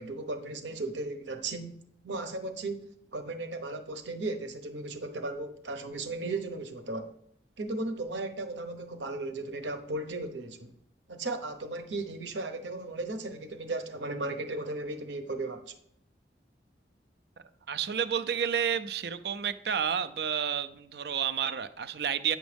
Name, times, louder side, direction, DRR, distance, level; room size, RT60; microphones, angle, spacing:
voice 1, 0.0-1.8 2.0-7.1 7.6-10.7 11.1-15.7, right 2 dB, 85° right, 1.0 m, -36 dB
voice 2, 17.7-22.4, right 8 dB, 65° right, 0.5 m, -30 dB
9.1 x 6.2 x 3.4 m
head